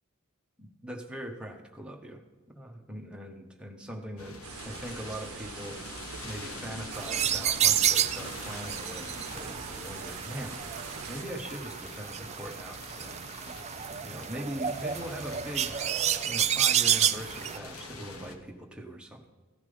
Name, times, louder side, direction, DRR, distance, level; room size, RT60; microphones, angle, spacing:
voice 1, 0.6-2.2 2.5-5.8 6.2-10.6 11.1-13.2 14.0-15.8 16.2-19.3, equal, 5° right, 1 dB, 1.3 m, -41 dB
sound 1, 4.2-18.4, left 3 dB, 80° left, 1.4 m, -45 dB
sound 2, 4.4-11.2, right 6 dB, 75° right, 0.7 m, -43 dB
sound 3, 6.9-17.6, right 9 dB, 30° right, 0.4 m, -30 dB
15.0 x 6.0 x 5.1 m, 1.3 s
head